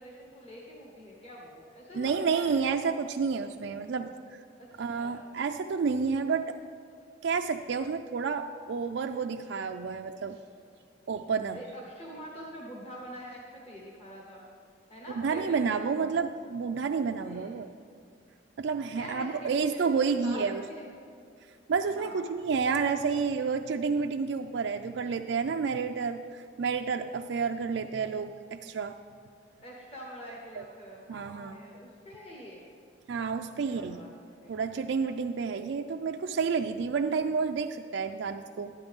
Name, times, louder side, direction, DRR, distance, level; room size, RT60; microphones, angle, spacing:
voice 1, 0.0-2.7 4.6-5.2 11.5-14.4 14.9-15.8 17.2-17.6 19.0-20.4 20.7-20.9 21.9-22.4 29.6-32.6 33.6-34.6, equal, 30° left, -3 dB, 1.2 m, -45 dB
voice 2, 1.9-4.1 4.8-6.6 7.2-10.4 11.1-11.6 15.1-17.7 18.6-20.6 21.7-28.9 30.6-30.7 31.1-31.6 33.1-34.0 34.5-38.7, right 5 dB, 70° right, 5 dB, 0.3 m, -30 dB
12.0 x 10.5 x 3.5 m, 2.3 s
head